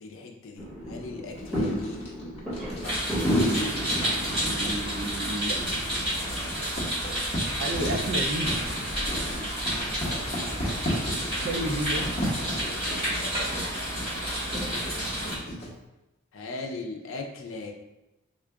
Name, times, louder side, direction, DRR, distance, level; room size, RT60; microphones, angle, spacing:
voice 1, 0.0-2.0 2.8-3.4 6.0-6.2 13.1-13.3 16.3-17.7, left 3 dB, 65° left, 2 dB, 0.6 m, -39 dB
sound 1, 0.5-12.6, equal, 5° right, 1.4 m, -34 dB
Writing, 1.3-15.7, equal, 30° left, 1.0 m, -36 dB
sound 2, 2.8-15.4, equal, 25° right, 1.4 m, -30 dB
voice 2, 4.4-5.6 7.6-8.5 11.4-12.0 14.7-15.4, right 1 dB, 50° right, 4 dB, 0.4 m, -32 dB
3.7 x 2.4 x 3.3 m, 0.97 s
head